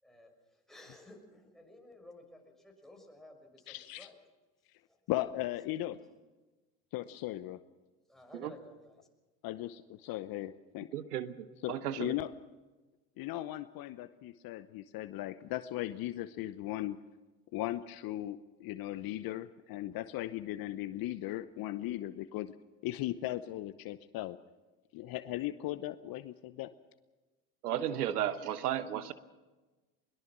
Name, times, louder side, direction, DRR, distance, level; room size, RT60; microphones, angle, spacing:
voice 1, 0.0-4.2 4.9-5.0 5.5-5.6 6.0-6.1 8.1-9.1, left 1 dB, ahead, 1 dB, 6.0 m, -55 dB
voice 2, 3.7-4.1 5.1-6.0 6.9-7.6 9.4-10.9 11.6-12.3 13.2-17.0 17.5-22.5 22.8-24.4 24.9-26.7, left 15 dB, 50° left, 13 dB, 0.9 m, -37 dB
voice 3, 10.9-12.1 27.6-29.1, right 11 dB, 85° right, 13 dB, 1.1 m, -34 dB
22.0 x 21.5 x 6.2 m, 1.2 s
hypercardioid pair, 75°, 45 cm